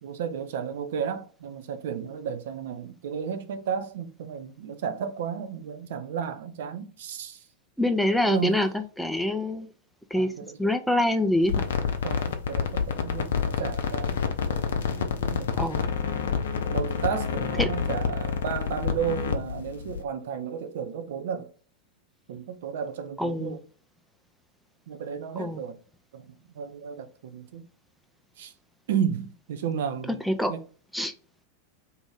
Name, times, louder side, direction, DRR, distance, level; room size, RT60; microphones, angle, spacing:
voice 1, 0.0-7.5 8.2-8.7 10.1-10.7 12.0-14.2 14.5-15.7 16.7-21.5 22.3-23.6 24.9-25.8 26.1-27.7 28.4-28.5 28.9-30.6, right 7 dB, 55° right, 0.5 m, -33 dB
voice 2, 7.8-8.7 9.0-9.7 10.1-10.3 10.6-11.7 15.6-15.9 17.6-17.7 23.2-23.6 25.4-25.6 30.3-30.5 30.9-31.1, left 1 dB, ahead, 0.4 m, -25 dB
sound 1, 11.4-20.0, left 6 dB, 60° left, 0.5 m, -28 dB
2.7 x 2.6 x 3.4 m
figure-of-eight pair, 90°, 0 cm